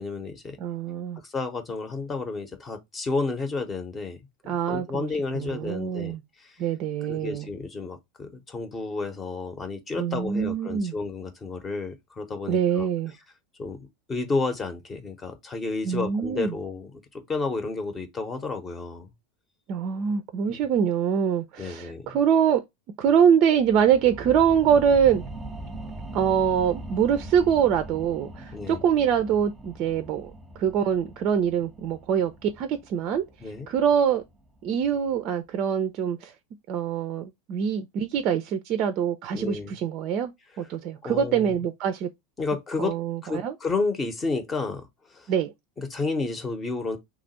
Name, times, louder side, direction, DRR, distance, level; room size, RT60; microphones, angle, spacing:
voice 1, 0.0-0.6 1.2-4.2 4.7-6.6 7.1-12.9 13.6-19.1 20.5-20.6 21.6-22.2 28.5-28.8 33.4-33.7 39.3-39.8 41.0-41.6 42.4-43.0 43.2-45.3 45.8-47.0, left 3 dB, 25° left, 0.8 m, -31 dB
voice 2, 0.6-1.2 4.5-5.1 5.3-6.2 6.6-7.5 10.0-10.9 12.5-13.1 15.8-16.5 19.7-22.6 23.0-25.2 26.1-30.3 30.6-33.2 33.7-34.2 34.6-36.3 36.7-40.3 40.6-42.1 42.8-43.5 45.3-45.5, right 8 dB, 45° right, 0.4 m, -24 dB
sound 1, 23.6-34.7 35.2-35.3, right 1 dB, 10° right, 0.8 m, -41 dB
2.9 x 2.5 x 4.1 m
figure-of-eight pair, 85°, 0 cm